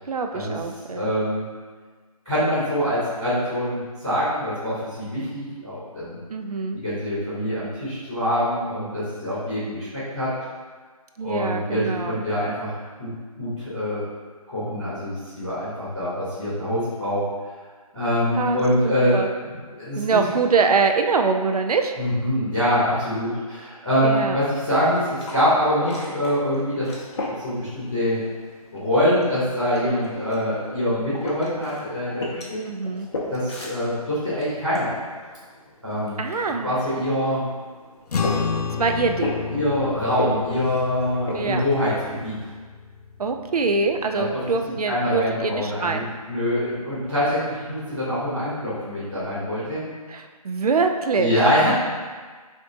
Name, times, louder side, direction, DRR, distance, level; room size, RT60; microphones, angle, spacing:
voice 1, 0.1-1.1 6.3-6.8 11.2-12.2 18.4-19.3 19.9-21.9 24.0-24.4 32.7-33.1 36.2-36.7 38.8-39.4 41.3-41.7 43.2-46.1 50.1-51.3, right 4 dB, 75° right, 5 dB, 0.5 m, -24 dB
voice 2, 0.8-1.4 2.2-6.2 6.7-10.3 11.2-12.7 13.0-13.1 13.4-14.0 14.5-17.3 17.9-19.2 19.4-20.0 22.0-26.9 27.2-28.2 28.7-32.6 33.3-34.9 35.8-36.2 36.6-37.5 39.5-42.3 44.1-44.4 44.9-46.0 46.3-49.8 51.1-51.7, equal, ahead, -30 dB, 0.4 m, -24 dB
sound 1, 24.7-42.6, left 2 dB, 45° left, 0.9 m, -37 dB
sound 2, 38.1-44.7, left 5 dB, 90° left, 0.5 m, -31 dB
6.0 x 2.6 x 2.6 m, 1.5 s
figure-of-eight pair, 165°, 19 cm